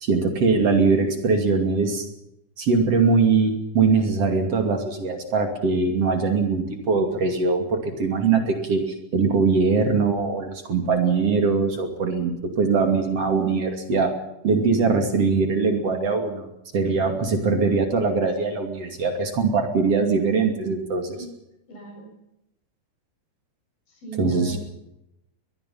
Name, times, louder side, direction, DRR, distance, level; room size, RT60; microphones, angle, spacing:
voice 1, 0.0-2.1 2.6-14.2 14.4-21.2 24.2-24.6, right 4 dB, 40° right, 5 dB, 3.0 m, -22 dB
voice 2, 21.7-22.2 23.9-24.6, right 4 dB, 50° left, 2 dB, 8.9 m, -37 dB
22.5 x 21.5 x 5.7 m, 0.84 s
omnidirectional pair, 5.3 m